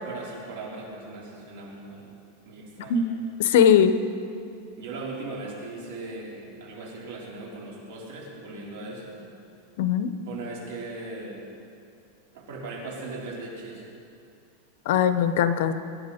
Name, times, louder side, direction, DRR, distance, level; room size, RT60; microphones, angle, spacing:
voice 1, 0.0-2.1 2.4-3.1 4.8-9.2 10.3-11.5 12.3-13.8, right 2 dB, 65° right, -4 dB, 4.4 m, -38 dB
voice 2, 3.4-3.9 9.8-10.1 14.9-15.7, left 8 dB, 65° left, 11 dB, 0.8 m, -20 dB
23.0 x 10.5 x 4.4 m, 2.5 s
supercardioid pair, 160°, 0 cm